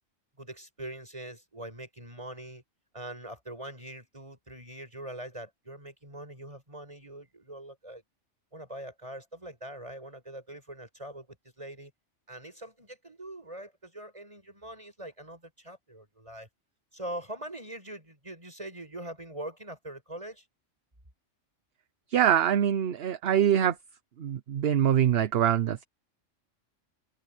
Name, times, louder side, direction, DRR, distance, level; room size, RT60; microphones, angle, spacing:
voice 1, 0.4-2.6 2.9-8.0 8.5-11.9 12.3-16.5 16.9-20.4, right 1 dB, 25° right, 7.1 m, -43 dB
voice 2, 22.1-23.8 24.2-25.8, right 10 dB, 55° right, 0.9 m, -24 dB
omnidirectional pair, 1.3 m